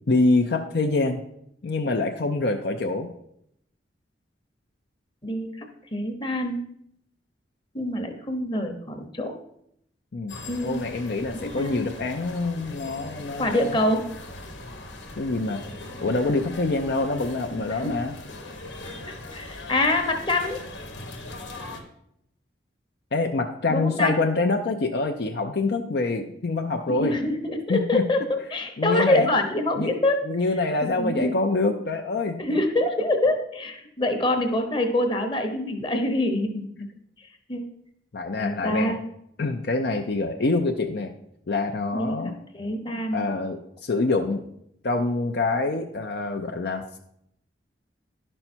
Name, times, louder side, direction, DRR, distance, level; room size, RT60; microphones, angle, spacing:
voice 1, 0.1-1.2 1.6-3.1 10.1-10.3 10.6-13.8 15.2-15.6 16.0-18.1 23.1-27.1 27.7-28.0 28.8-29.3 29.8-29.9 30.3-32.4 38.1-39.0 39.4-41.1 41.5-42.4 43.1-44.4 44.8-47.0, left 3 dB, 60° left, 4 dB, 0.6 m, -25 dB
voice 2, 5.2-6.6 7.7-9.3 10.5-10.8 11.3-11.9 13.4-14.1 17.7-18.0 18.8-20.6 23.7-24.1 26.9-30.2 30.8-31.3 32.4-36.9 37.5-37.7 38.4-39.0 41.9-43.2, left 1 dB, 25° left, 5 dB, 1.0 m, -25 dB
sound 1, 10.3-21.8, left 2 dB, 80° left, 1.2 m, -40 dB
11.0 x 5.5 x 4.4 m, 0.74 s
head